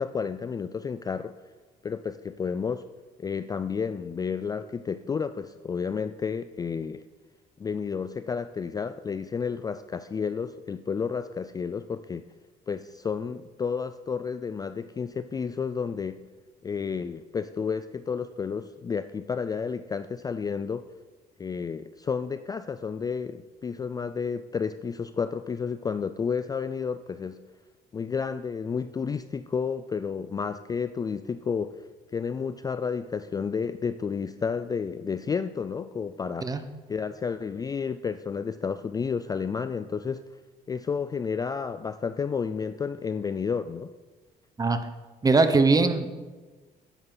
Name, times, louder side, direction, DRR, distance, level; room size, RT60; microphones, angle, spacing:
voice 1, 0.0-1.3 1.8-2.8 3.2-7.0 7.6-12.3 12.7-16.2 16.6-20.9 21.4-27.4 27.9-31.9 32.1-36.6 36.9-40.2 40.7-43.9, left 6 dB, 20° left, 12 dB, 0.3 m, -31 dB
voice 2, 45.2-46.1, right 3 dB, 20° right, 9 dB, 0.9 m, -21 dB
12.0 x 9.8 x 4.0 m, 1.3 s
cardioid pair, 110°, 17 cm